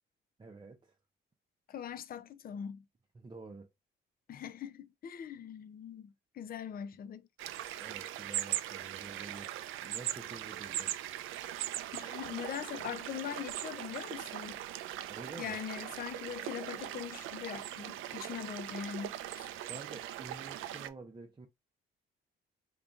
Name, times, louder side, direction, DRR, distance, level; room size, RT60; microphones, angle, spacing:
voice 1, 0.4-1.0 3.1-3.7 7.8-11.0 15.1-15.6 19.7-21.5, right 3 dB, 20° right, 0.6 m, -49 dB
voice 2, 1.7-2.8 4.3-7.3 11.9-14.6 15.4-19.5, left 9 dB, 50° left, 0.5 m, -42 dB
sound 1, 7.4-20.9, right 12 dB, 85° right, 0.4 m, -40 dB
3.8 x 2.9 x 2.4 m
cardioid pair, 90°, 20 cm